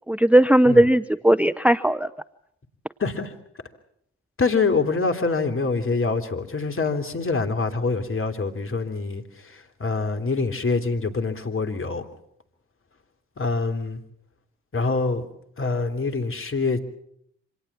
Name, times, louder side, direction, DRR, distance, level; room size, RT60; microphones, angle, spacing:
voice 1, 0.1-2.1, right 1 dB, 5° right, 12 dB, 0.9 m, -17 dB
voice 2, 3.0-3.3 4.4-12.0 13.4-14.0 14.7-15.3 15.6-16.8, left 4 dB, 40° left, 6 dB, 3.3 m, -25 dB
26.0 x 19.0 x 7.4 m, 0.71 s
hypercardioid pair, 45°, 34 cm